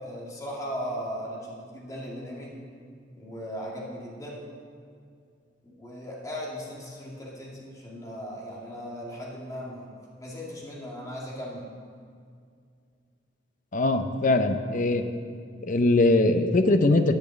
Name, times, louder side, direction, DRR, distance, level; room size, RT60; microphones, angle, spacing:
voice 1, 0.0-2.5 3.1-4.4 5.6-9.9 10.2-11.6, equal, 20° left, -5 dB, 2.2 m, -37 dB
voice 2, 13.7-15.0 15.6-17.2, left 2 dB, 45° left, 8 dB, 0.6 m, -21 dB
10.5 x 6.0 x 8.0 m, 2.3 s
head